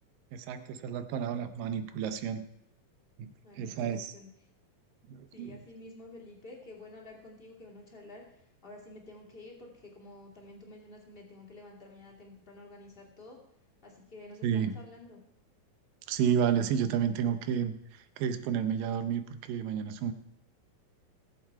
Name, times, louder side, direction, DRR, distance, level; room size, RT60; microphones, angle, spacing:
voice 1, 0.3-2.4 3.2-4.1 5.1-5.6 14.4-14.8 16.1-20.1, right 8 dB, 80° right, 10 dB, 2.4 m, -31 dB
voice 2, 3.4-4.3 5.3-13.4 13.8-15.2, left 2 dB, 20° left, -1 dB, 1.8 m, -50 dB
18.0 x 7.6 x 4.6 m, 0.72 s
omnidirectional pair, 4.0 m